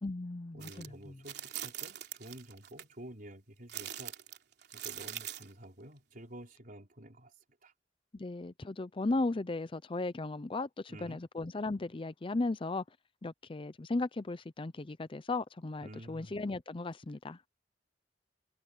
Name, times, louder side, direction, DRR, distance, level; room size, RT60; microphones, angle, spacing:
voice 1, 0.0-1.2 8.1-12.8 13.2-17.5, left 2 dB, 30° left, 0.6 m, -36 dB
voice 2, 0.5-4.1 4.7-7.3 7.6-7.7 10.9-11.2 15.8-16.3, right 1 dB, 50° right, 4.4 m, -50 dB
sound 1, 0.6-0.9 1.2-2.8 3.7-5.5, right 11 dB, 65° right, 3.3 m, -42 dB
head